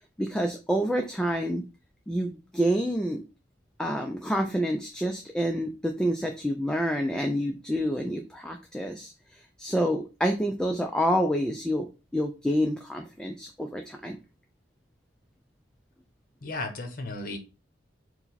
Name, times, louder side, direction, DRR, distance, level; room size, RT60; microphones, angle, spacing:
voice 1, 0.2-1.7 2.1-3.2 3.8-9.1 9.6-14.2, equal, 5° left, 4 dB, 0.3 m, -28 dB
voice 2, 16.4-17.4, left 2 dB, 50° left, 6 dB, 0.9 m, -34 dB
4.7 x 2.1 x 4.0 m, 0.31 s
head